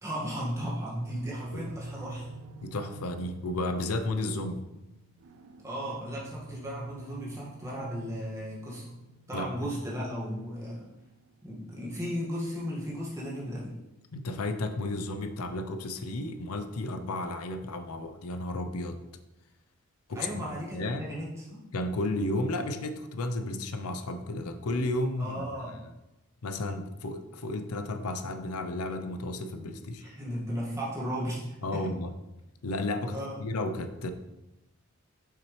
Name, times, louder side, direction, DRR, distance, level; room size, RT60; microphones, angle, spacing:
voice 1, 0.0-2.3 5.6-8.9 9.3-10.8 11.4-13.7 20.2-21.6 25.1-25.9 30.0-31.8 33.0-33.4, equal, 15° right, -6 dB, 1.7 m, -35 dB
sound 1, 1.0-13.7, right 2 dB, 65° right, 0.4 m, -48 dB
voice 2, 2.6-4.6 9.3-9.7 14.1-19.0 20.1-20.4 20.7-21.0 21.7-25.5 26.4-30.0 31.6-32.1 32.6-34.1, left 2 dB, 85° left, 8 dB, 0.6 m, -33 dB
7.1 x 5.9 x 3.2 m, 0.96 s
head